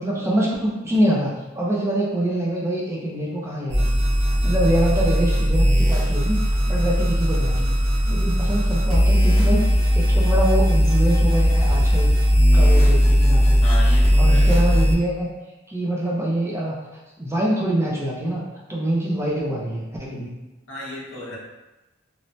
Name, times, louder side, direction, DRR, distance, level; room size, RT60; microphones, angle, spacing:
voice 1, 0.0-4.0 4.3-7.7 8.1-12.1 12.5-13.6 14.2-15.3 15.7-16.8 17.2-18.4 18.7-20.3, right 1 dB, 15° right, -4 dB, 0.4 m, -25 dB
sound 1, 3.7-14.9, equal, 35° right, 0.7 m, -18 dB
voice 2, 13.6-14.5 20.7-21.4, equal, 65° left, -5 dB, 0.7 m, -33 dB
3.0 x 2.0 x 2.6 m, 1.1 s
head